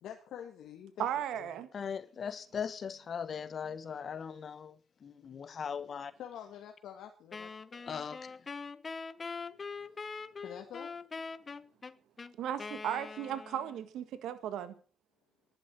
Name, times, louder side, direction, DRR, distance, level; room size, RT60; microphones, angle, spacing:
voice 1, 0.0-1.7 6.2-7.9 10.4-10.9, left 9 dB, 80° left, 2.0 m, -47 dB
voice 2, 1.0-1.7 12.4-14.7, right 10 dB, 80° right, 1.7 m, -36 dB
voice 3, 1.7-6.1 7.9-8.4, left 7 dB, 50° left, 1.4 m, -39 dB
Wind instrument woodwind instrument, 7.3-13.9, left 4 dB, 35° left, 0.9 m, -43 dB
11.5 x 11.5 x 7.5 m
cardioid pair, 90°, 0 cm